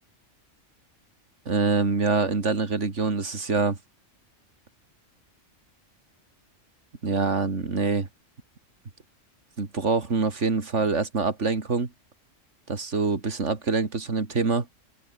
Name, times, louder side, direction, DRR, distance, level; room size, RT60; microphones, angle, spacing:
voice 1, 1.5-3.8 7.0-8.1 9.6-11.9 12.7-14.7, right 4 dB, 70° right, 2.8 m, -25 dB
open air
omnidirectional pair, 1.3 m